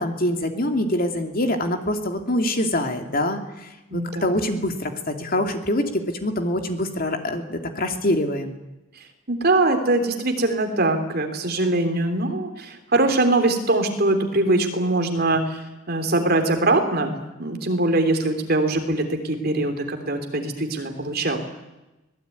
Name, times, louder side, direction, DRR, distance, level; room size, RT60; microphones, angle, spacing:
voice 1, 0.0-8.5, left 1 dB, 45° left, 5 dB, 2.6 m, -25 dB
voice 2, 3.9-4.3 9.3-15.6 15.9-21.4, right 2 dB, 50° right, 5 dB, 3.3 m, -22 dB
25.0 x 18.5 x 9.4 m, 1.0 s
head